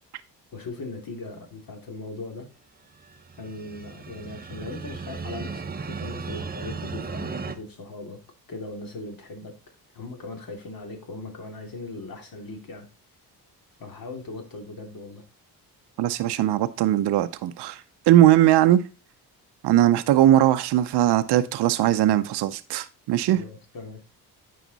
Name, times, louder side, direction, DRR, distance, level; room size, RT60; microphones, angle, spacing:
voice 1, 0.5-2.5 3.4-8.2 8.5-9.6 9.9-12.9 13.8-15.2 23.3-24.0, left 2 dB, 60° left, 2.6 m, -39 dB
sound 1, 3.0-7.5, right 4 dB, 25° right, 0.7 m, -35 dB
voice 2, 16.0-18.8 19.6-23.4, right 13 dB, 80° right, 0.7 m, -20 dB
9.3 x 5.0 x 4.0 m
cardioid pair, 80°, 39 cm